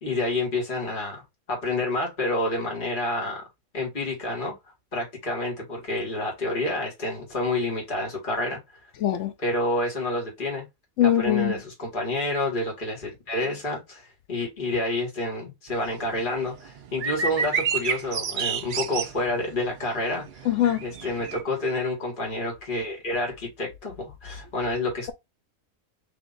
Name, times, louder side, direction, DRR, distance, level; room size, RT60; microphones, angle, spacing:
voice 1, 0.0-3.5 3.7-4.6 4.9-8.6 9.4-10.7 11.0-20.5 20.8-25.1, left 1 dB, 35° left, 1.9 m, -29 dB
voice 2, 9.0-9.3 11.0-11.5 20.5-20.8, left 11 dB, 65° left, 1.0 m, -21 dB
sound 1, 15.7-21.4, right 6 dB, 60° right, 0.5 m, -30 dB
3.6 x 2.9 x 3.8 m
omnidirectional pair, 1.4 m